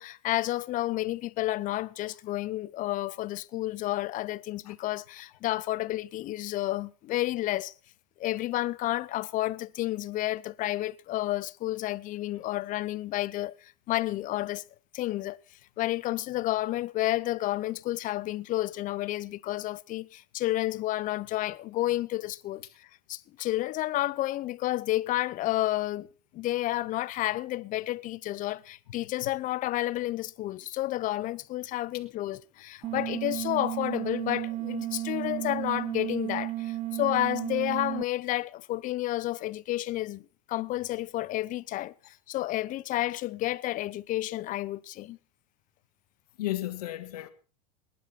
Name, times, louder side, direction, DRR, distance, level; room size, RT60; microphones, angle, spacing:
voice 1, 0.0-7.7 8.2-14.6 14.9-15.4 15.8-26.1 26.3-45.2, left 16 dB, 45° left, 0.8 m, -31 dB
sound 1, 32.8-38.0, right 16 dB, 35° right, 1.1 m, -33 dB
voice 2, 46.4-47.3, left 15 dB, 85° left, 1.6 m, -35 dB
19.5 x 10.5 x 5.9 m
supercardioid pair, 110°, 19 cm